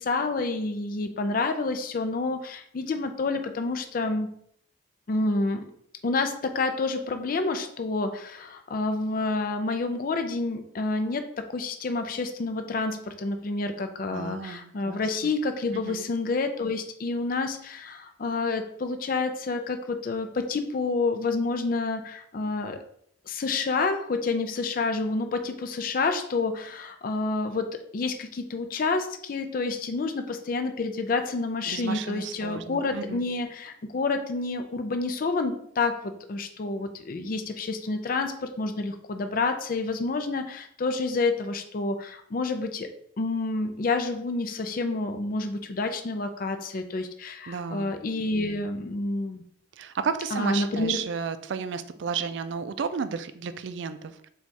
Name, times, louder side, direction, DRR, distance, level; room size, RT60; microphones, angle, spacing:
voice 1, 0.0-4.3 5.1-5.7 6.0-22.8 23.3-42.9 43.2-49.4 50.3-51.0, left 3 dB, 45° left, 7 dB, 0.4 m, -29 dB
voice 2, 14.1-15.0 15.7-16.0 31.7-33.2 47.5-47.9 49.7-54.3, right 6 dB, 65° right, 11 dB, 0.3 m, -33 dB
4.2 x 2.3 x 4.5 m, 0.68 s
head